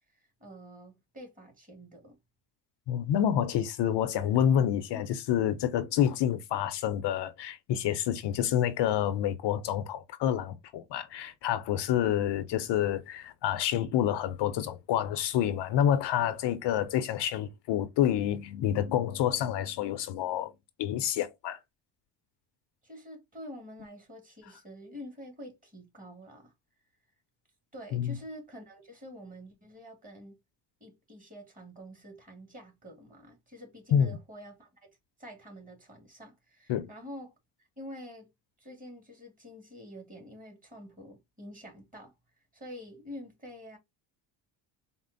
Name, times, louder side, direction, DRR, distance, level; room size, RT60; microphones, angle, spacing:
voice 1, 0.1-2.2 4.9-5.0 6.1-6.3 22.8-26.5 27.7-30.4 30.8-34.9 35.2-37.3 37.6-38.3 38.6-42.1 42.5-43.8, equal, 20° right, 1.9 m, -47 dB
voice 2, 2.9-20.5 20.8-21.6 27.9-28.2 33.9-34.2 36.7-36.9, left 10 dB, 70° left, 0.7 m, -28 dB
4.2 x 2.0 x 3.8 m
cardioid pair, 105°, 44 cm